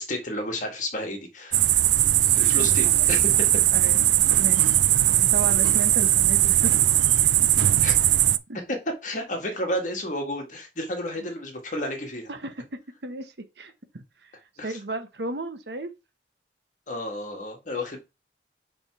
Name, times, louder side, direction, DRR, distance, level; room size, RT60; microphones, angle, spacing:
voice 1, 0.0-1.6 2.3-3.3 7.8-7.9 8.7-8.8 9.0-12.3 14.6-14.7 16.9-18.0, left 1 dB, 45° left, 1.7 m, -31 dB
sound 1, 1.5-8.4, right 13 dB, 85° right, 0.4 m, -19 dB
voice 2, 2.6-3.0 3.7-4.0 4.4-4.7 5.2-6.7 7.2-7.3 8.5-8.6 12.3-12.7 13.0-14.3 14.6-15.9, right 3 dB, 70° right, 1.0 m, -34 dB
6.7 x 3.5 x 4.7 m
head